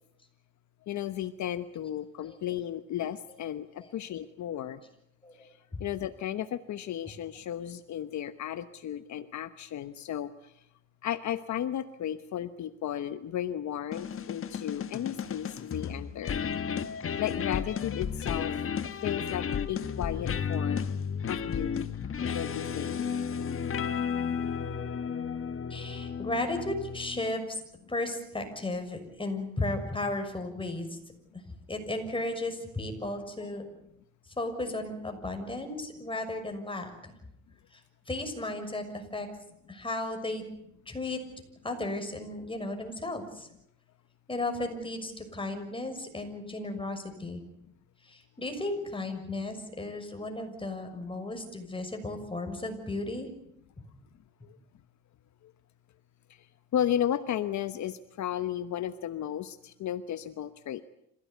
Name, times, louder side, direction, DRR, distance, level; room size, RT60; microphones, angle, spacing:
voice 1, 0.9-4.8 5.8-10.3 11.0-16.4 17.2-18.5 19.0-20.9 21.3-21.9 22.3-23.0 56.7-60.8, left 11 dB, 70° left, 11 dB, 1.1 m, -34 dB
voice 2, 5.2-5.8 25.7-27.6 27.9-31.0 31.7-33.6 34.4-37.1 37.7-37.8 38.1-39.3 39.7-40.4 40.9-41.2 41.6-43.5 44.3-47.4 48.1-53.3, left 2 dB, 15° left, 5 dB, 6.4 m, -35 dB
sound 1, 13.9-27.4, left 7 dB, 45° left, 1.4 m, -33 dB
26.5 x 16.5 x 9.4 m, 0.79 s
cardioid pair, 90°, 30 cm